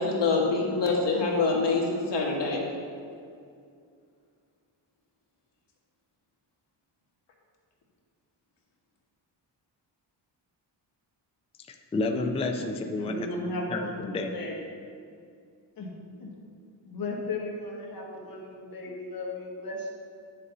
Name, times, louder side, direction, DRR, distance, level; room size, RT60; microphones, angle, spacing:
voice 1, 0.0-2.6, left 3 dB, 65° left, -2 dB, 1.8 m, -25 dB
voice 2, 11.9-13.3 13.7-14.3, left 2 dB, 15° left, 4 dB, 0.4 m, -29 dB
voice 3, 13.0-13.9 14.3-14.5 15.8-15.9 16.2-16.3 16.9-19.9, left 2 dB, 50° left, -2 dB, 1.8 m, -35 dB
9.4 x 6.7 x 4.0 m, 2.3 s
wide cardioid pair, 170°, 45 cm